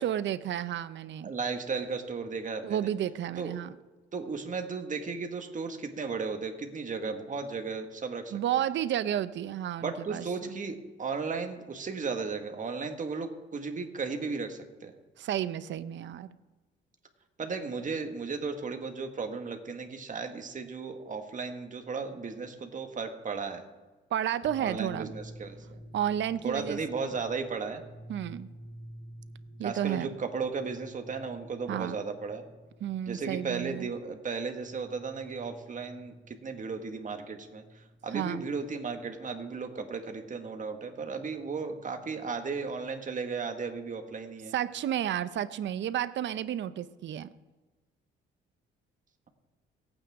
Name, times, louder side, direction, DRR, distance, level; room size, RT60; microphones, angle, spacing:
voice 1, 0.0-1.4 2.6-3.7 8.3-10.5 15.2-16.4 24.1-25.1 25.9-26.8 28.1-28.5 29.6-30.1 31.7-32.0 32.8-33.9 38.1-38.4 44.5-47.3, right 10 dB, 70° right, 15 dB, 0.7 m, -32 dB
voice 2, 1.2-2.9 3.4-3.6 4.1-8.3 9.8-14.9 17.4-23.6 24.6-25.6 26.4-27.8 29.6-32.4 33.1-44.5, right 4 dB, 40° right, 5 dB, 1.8 m, -35 dB
sound 1, 24.5-42.7, equal, 50° left, 4.0 m, -52 dB
24.0 x 9.1 x 3.7 m, 1.2 s
cardioid pair, 90°, 20 cm